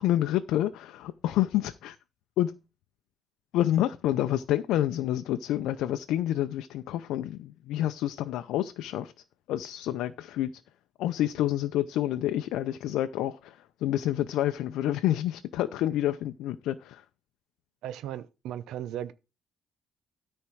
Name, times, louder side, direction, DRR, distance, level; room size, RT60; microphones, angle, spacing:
voice 1, 0.0-2.0 2.4-2.5 3.5-9.1 9.5-10.5 11.0-17.0, left 13 dB, 85° left, 0.6 m, -28 dB
voice 2, 17.8-19.1, right 11 dB, 75° right, 0.7 m, -36 dB
13.0 x 4.4 x 6.2 m
cardioid pair, 175°, 0 cm